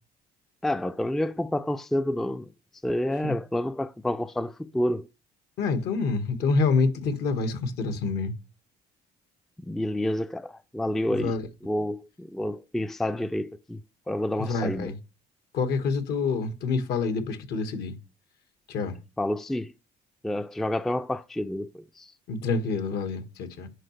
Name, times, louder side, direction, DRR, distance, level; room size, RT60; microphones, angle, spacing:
voice 1, 0.6-2.5 2.8-5.1 9.6-11.3 11.6-13.8 14.1-14.9 19.2-19.7 20.2-22.1, left 1 dB, ahead, 0.3 m, -29 dB
voice 2, 5.6-8.3 11.1-11.4 14.4-15.0 15.5-17.9 18.7-19.0 22.3-23.7, left 4 dB, 75° left, 1.5 m, -27 dB
10.0 x 4.8 x 3.2 m
cardioid pair, 110°, 17 cm